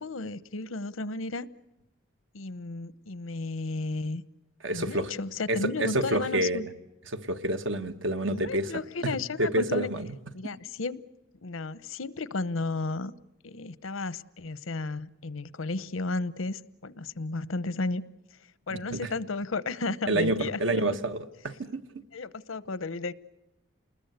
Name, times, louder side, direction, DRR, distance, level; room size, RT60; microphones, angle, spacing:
voice 1, 0.0-1.5 2.3-4.2 4.7-6.7 8.3-9.9 10.3-11.0 11.4-13.1 13.4-18.0 18.7-20.8 22.1-23.1, left 3 dB, 90° left, 17 dB, 0.9 m, -33 dB
voice 2, 4.6-5.1 5.5-6.6 7.1-8.7 9.0-10.1 10.4-10.5 18.7-19.0 20.1-21.2 21.4-21.8, right 1 dB, 70° right, 9 dB, 1.4 m, -28 dB
29.0 x 20.5 x 8.1 m, 0.94 s
head